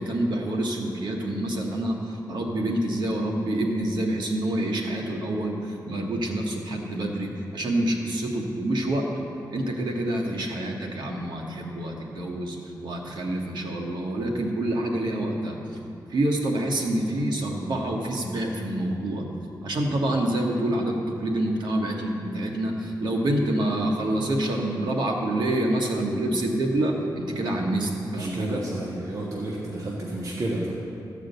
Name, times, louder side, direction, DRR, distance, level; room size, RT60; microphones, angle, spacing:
voice 1, 0.0-15.6 16.1-19.2 19.6-28.6, right 1 dB, 75° right, 0 dB, 1.5 m, -27 dB
voice 2, 27.3-27.7 28.1-30.7, right 1 dB, 50° right, -4 dB, 1.5 m, -31 dB
14.0 x 5.0 x 8.1 m, 2.7 s
wide cardioid pair, 100°, 8 cm